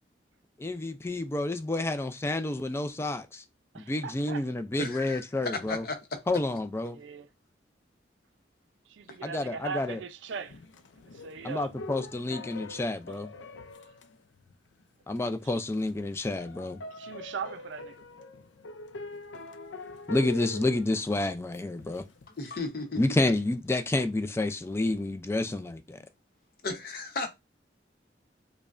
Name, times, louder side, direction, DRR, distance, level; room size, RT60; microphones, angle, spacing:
voice 1, 0.6-3.4 3.7-5.8 6.3-7.0 9.2-10.0 11.4-13.3 15.1-16.8 20.1-22.0 23.0-26.0, left 2 dB, 15° left, 0.3 m, -29 dB
voice 2, 3.7-4.4 6.9-7.3 8.9-10.6 11.0-11.7 15.4-15.6 16.9-18.0, right 6 dB, 85° right, 0.5 m, -39 dB
voice 3, 4.8-5.2 5.5-6.0 9.1-9.2 22.3-23.0 26.6-27.3, left 3 dB, 55° left, 0.8 m, -34 dB
sound 1, 10.4-14.8 15.2-15.3 15.6-22.3, left 3 dB, 85° left, 0.4 m, -44 dB
4.9 x 2.2 x 2.4 m
head